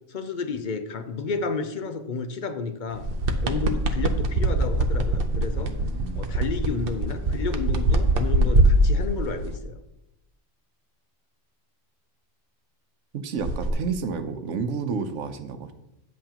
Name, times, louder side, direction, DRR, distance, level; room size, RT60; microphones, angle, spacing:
voice 1, 0.1-3.1 3.4-5.7 6.1-9.8, left 4 dB, 50° left, 8 dB, 0.6 m, -31 dB
sound 1, 2.9-9.5 13.4-13.7, right 1 dB, 55° right, 0.8 m, -23 dB
voice 2, 5.6-6.2 13.1-15.7, right 5 dB, 75° right, 9 dB, 1.1 m, -31 dB
9.4 x 7.7 x 2.9 m, 0.88 s
omnidirectional pair, 1.3 m